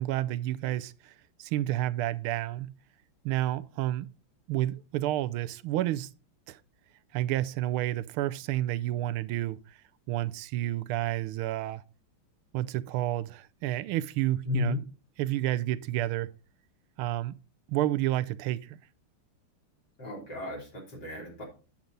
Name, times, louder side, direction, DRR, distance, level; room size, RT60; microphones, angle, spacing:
voice 1, 0.0-2.7 3.2-4.1 4.5-6.1 6.5-6.6 7.1-9.8 10.1-11.8 12.5-14.8 15.2-16.3 17.0-17.4 17.7-18.8, right 14 dB, 85° right, 1.5 m, -30 dB
voice 2, 14.5-14.8 20.0-21.4, left 5 dB, 50° left, 3.8 m, -33 dB
8.8 x 7.3 x 3.9 m
omnidirectional pair, 2.3 m